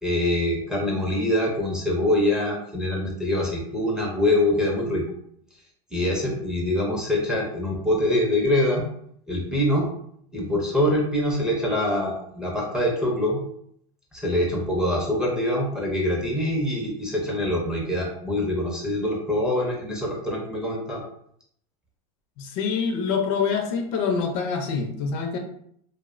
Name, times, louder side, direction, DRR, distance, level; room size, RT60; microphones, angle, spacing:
voice 1, 0.0-5.0 5.9-8.9 9.3-9.9 10.3-13.4 14.1-21.0, left 1 dB, 5° right, -3 dB, 0.5 m, -24 dB
voice 2, 22.4-25.4, left 5 dB, 55° left, 4 dB, 0.5 m, -25 dB
2.5 x 2.0 x 2.4 m, 0.67 s
supercardioid pair, 140°, 20 cm